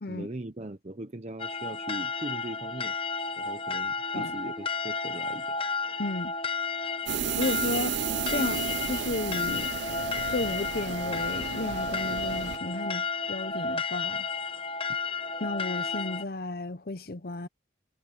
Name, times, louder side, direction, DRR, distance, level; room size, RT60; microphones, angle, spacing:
voice 1, 0.1-2.9 3.4-5.6, right 1 dB, 35° right, 0.9 m, -39 dB
sound 1, 1.4-16.2, left 4 dB, 30° left, 1.1 m, -32 dB
voice 2, 6.0-6.3 7.4-8.0 8.3-9.7 10.3-14.3 15.4-17.5, left 2 dB, 55° left, 0.7 m, -33 dB
sound 2, 7.1-12.6, right 9 dB, 75° right, 0.3 m, -33 dB
head